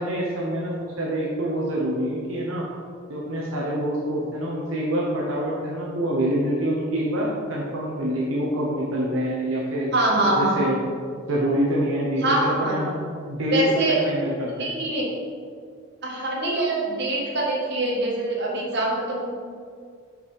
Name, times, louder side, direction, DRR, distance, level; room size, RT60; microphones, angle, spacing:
voice 1, 0.0-2.6 3.1-9.9 10.4-10.8 11.3-13.0 13.3-14.7, right 1 dB, 75° right, -5 dB, 1.0 m, -26 dB
voice 2, 9.9-10.6 12.2-12.8 13.5-14.0 14.6-15.1 16.0-19.3, right 2 dB, 55° right, -3 dB, 1.5 m, -24 dB
5.7 x 5.3 x 4.8 m, 2.1 s
head